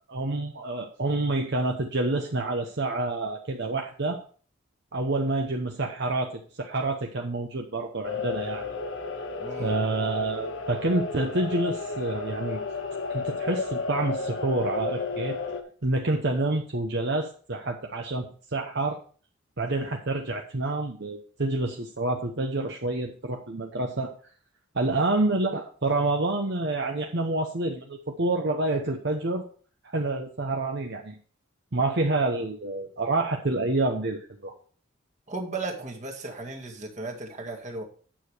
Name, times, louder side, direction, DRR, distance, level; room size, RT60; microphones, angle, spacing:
voice 1, 0.1-4.2 4.9-8.7 9.6-12.6 13.1-15.4 15.8-19.0 19.6-24.1 24.7-29.5 29.8-31.2 31.7-34.5, right 2 dB, 55° right, 2 dB, 1.0 m, -28 dB
sound 1, 8.0-15.6, left 3 dB, 60° left, 1.3 m, -33 dB
voice 2, 9.4-9.7 35.3-37.8, right 3 dB, 35° right, 1 dB, 1.8 m, -35 dB
9.3 x 6.7 x 4.6 m, 0.42 s
head